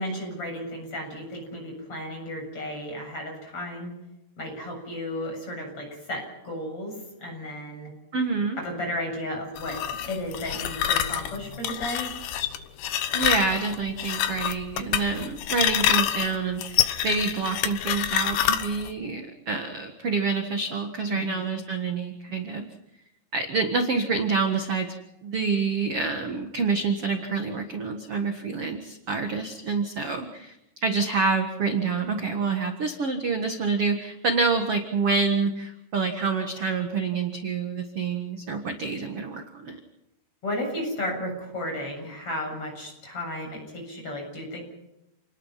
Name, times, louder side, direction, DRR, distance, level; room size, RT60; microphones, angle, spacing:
voice 1, 0.0-3.9 4.4-7.9 8.6-12.1 21.1-21.4 40.4-44.6, left 1 dB, 30° left, 1 dB, 8.4 m, -34 dB
voice 2, 8.1-8.6 13.1-22.7 23.3-24.9 25.2-30.5 30.8-39.8, right 4 dB, 55° right, 5 dB, 1.7 m, -27 dB
sound 1, 9.6-18.9, left 10 dB, 70° left, 3.0 m, -27 dB
29.0 x 20.5 x 5.8 m, 0.90 s
omnidirectional pair, 5.0 m